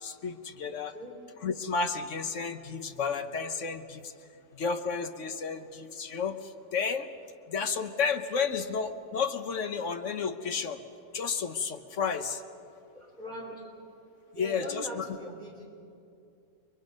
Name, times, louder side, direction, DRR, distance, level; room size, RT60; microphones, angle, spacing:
voice 1, 0.0-0.9 1.4-4.1 4.5-7.1 7.5-10.8 11.1-12.4 14.4-15.1, left 5 dB, 50° left, 8 dB, 1.1 m, -32 dB
voice 2, 12.9-13.6 14.3-15.7, equal, 25° right, -1 dB, 3.3 m, -41 dB
29.0 x 22.5 x 5.3 m, 2.5 s
omnidirectional pair, 1.8 m